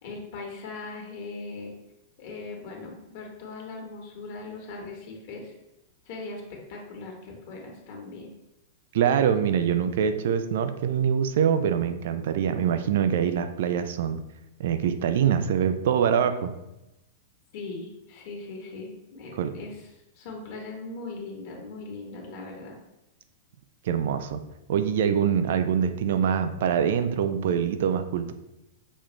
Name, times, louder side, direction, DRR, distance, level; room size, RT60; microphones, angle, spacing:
voice 1, 0.0-1.7 2.2-5.5 6.0-8.3 17.5-19.8 20.2-22.8, left 3 dB, 55° left, 0 dB, 1.3 m, -39 dB
voice 2, 8.9-14.2 14.6-16.5 19.3-19.5 23.8-24.4 24.7-28.3, right 8 dB, 60° right, 9 dB, 0.4 m, -24 dB
6.2 x 2.5 x 3.1 m, 0.91 s
hypercardioid pair, 100°, 0 cm